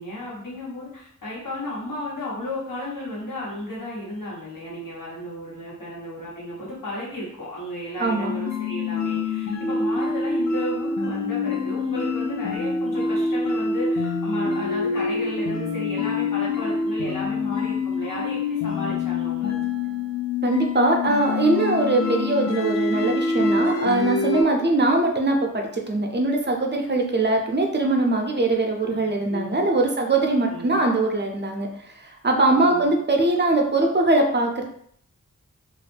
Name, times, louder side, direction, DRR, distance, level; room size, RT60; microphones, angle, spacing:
voice 1, 0.0-19.6 28.9-29.6 30.5-30.9 32.5-32.9, left 1 dB, 85° left, -6 dB, 1.2 m, -34 dB
sound 1, 8.0-24.4, left 3 dB, 60° left, 0.5 m, -26 dB
voice 2, 8.0-8.3 20.4-31.7 32.0-34.6, right 2 dB, 35° right, 2 dB, 0.5 m, -21 dB
2.4 x 2.1 x 3.2 m, 0.65 s
wide cardioid pair, 60°, 32 cm